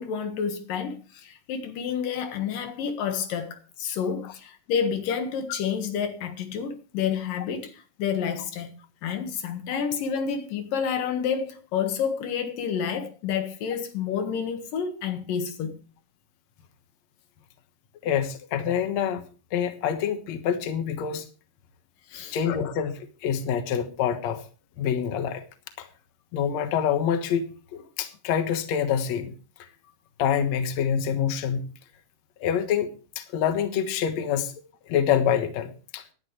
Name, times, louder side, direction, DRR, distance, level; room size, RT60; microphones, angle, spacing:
voice 1, 0.0-8.7 9.0-15.7 22.1-22.4, left 7 dB, 85° left, 3.2 m, -29 dB
voice 2, 18.0-19.2 19.5-21.3 22.3-24.4 24.8-25.4 25.8-25.9 26.3-29.3 30.2-31.7 32.4-32.9 33.2-34.5 34.9-36.0, left 8 dB, 60° left, 2.4 m, -26 dB
18.5 x 11.0 x 3.2 m
omnidirectional pair, 3.8 m